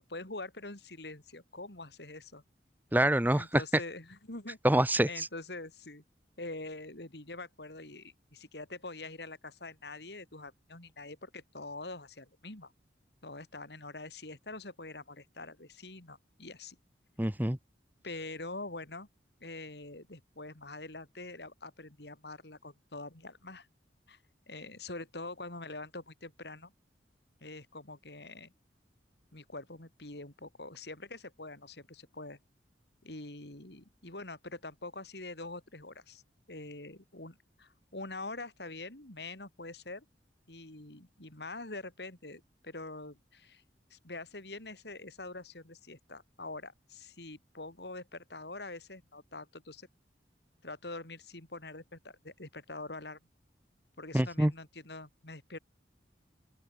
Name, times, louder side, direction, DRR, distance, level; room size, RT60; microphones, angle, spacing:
voice 1, 0.0-2.4 3.3-4.6 5.1-6.0 6.4-12.7 13.2-16.8 18.0-19.1 19.4-23.7 24.1-24.2 24.5-26.7 27.4-28.5 29.3-32.4 33.0-36.2 36.5-40.1 40.5-43.6 43.9-49.9 50.6-53.2 54.0-55.6, left 2 dB, 65° left, 3.7 m, -45 dB
voice 2, 2.9-3.6 4.6-5.3 17.2-17.6 54.1-54.5, right 1 dB, 10° right, 0.9 m, -26 dB
open air
head